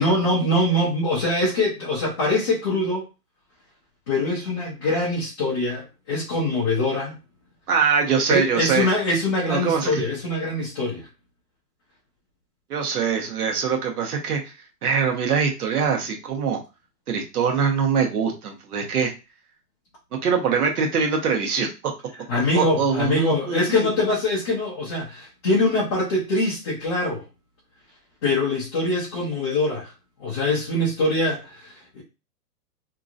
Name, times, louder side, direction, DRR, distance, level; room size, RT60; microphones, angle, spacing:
voice 1, 0.0-3.0 4.1-7.2 8.2-11.1 22.3-27.2 28.2-29.9 30.2-32.0, left 2 dB, 20° left, -7 dB, 0.5 m, -23 dB
voice 2, 7.7-8.9 9.5-10.0 12.7-14.4 14.8-16.6 17.1-19.1 20.2-21.7 22.5-23.9, right 6 dB, 65° right, 2 dB, 1.1 m, -23 dB
2.9 x 2.6 x 2.5 m, 0.29 s
hypercardioid pair, 145°, 49 cm